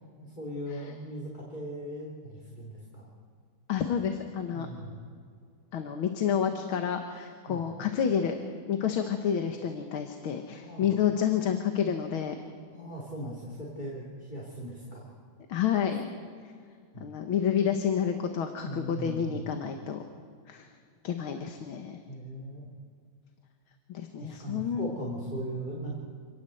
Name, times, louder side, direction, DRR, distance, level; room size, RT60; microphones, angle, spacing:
voice 1, 0.2-3.1 4.5-5.0 7.5-7.6 10.6-10.9 12.7-15.1 16.9-17.1 18.6-19.5 22.1-22.7 24.2-25.9, equal, 20° left, -4 dB, 3.5 m, -39 dB
voice 2, 3.7-4.7 5.7-8.4 8.7-12.3 15.5-16.1 17.0-20.0 20.5-20.7 21.0-22.0 23.9-24.9, left 8 dB, 80° left, 5 dB, 2.1 m, -29 dB
27.0 x 18.5 x 7.9 m, 2.2 s
omnidirectional pair, 2.2 m